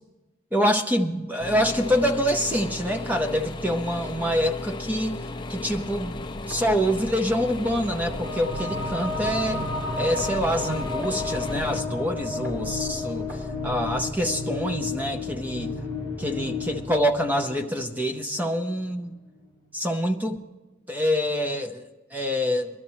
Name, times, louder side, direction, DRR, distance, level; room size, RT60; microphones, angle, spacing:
voice 1, 0.5-5.2 5.5-6.2 6.5-9.6 10.0-15.8 16.2-19.1 19.7-20.4 20.9-22.7, equal, 10° right, 6 dB, 0.7 m, -26 dB
sound 1, 1.4-11.8, left 2 dB, 20° left, 0.4 m, -35 dB
sound 2, 5.7-14.6, left 1 dB, 85° right, 5.7 m, -43 dB
sound 3, 8.0-18.9, left 3 dB, 50° right, 1.4 m, -32 dB
23.5 x 12.5 x 3.1 m, 1.1 s
head